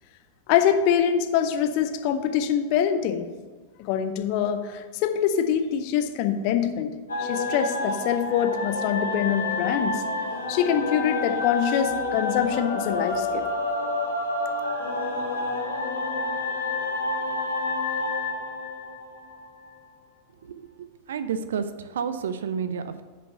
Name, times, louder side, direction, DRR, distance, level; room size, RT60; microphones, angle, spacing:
voice 1, 0.5-3.3 3.8-10.0 10.5-13.5, left 9 dB, 45° left, 7 dB, 0.6 m, -24 dB
sound 1, 7.1-19.7, left 2 dB, 70° left, 1.1 m, -29 dB
voice 2, 20.4-23.0, right 6 dB, 60° right, 11 dB, 0.5 m, -31 dB
5.4 x 5.4 x 6.5 m, 1.3 s
figure-of-eight pair, 90°, 0 cm